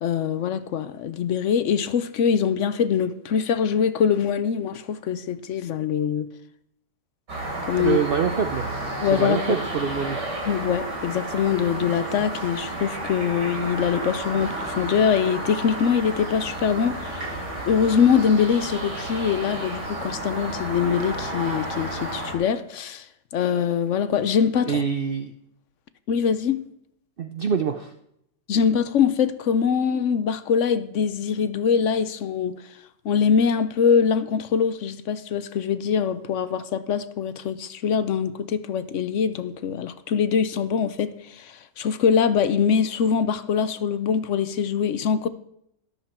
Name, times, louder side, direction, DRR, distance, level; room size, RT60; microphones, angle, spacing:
voice 1, 0.0-6.3 7.6-8.0 9.0-9.4 10.5-17.3 17.7-23.1 23.3-24.8 26.1-26.6 28.5-32.6 33.0-45.3, left 7 dB, 60° left, 0.8 m, -23 dB
sound 1, 7.3-22.3, right 1 dB, 90° right, 4.1 m, -32 dB
voice 2, 7.8-8.7 9.1-10.2 24.7-25.3 27.2-27.9, right 7 dB, 65° right, 0.5 m, -25 dB
13.0 x 12.0 x 4.4 m
omnidirectional pair, 1.8 m